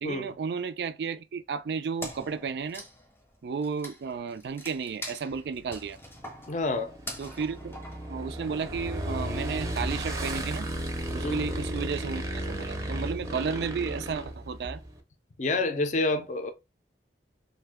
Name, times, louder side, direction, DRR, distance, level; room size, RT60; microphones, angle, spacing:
voice 1, 0.0-2.8 3.4-6.0 7.2-7.8 8.1-10.7 11.1-14.8, right 5 dB, 65° right, 0.3 m, -33 dB
Wood, 2.0-8.7, left 1 dB, 15° left, 0.7 m, -44 dB
Motorcycle / Engine, 5.3-15.0, right 1 dB, 15° right, 0.5 m, -37 dB
voice 2, 6.5-6.9 11.2-11.4 15.4-16.5, left 2 dB, 40° left, 0.5 m, -28 dB
sound 1, 8.8-14.7, equal, 90° right, 0.8 m, -37 dB
2.5 x 2.2 x 3.4 m
head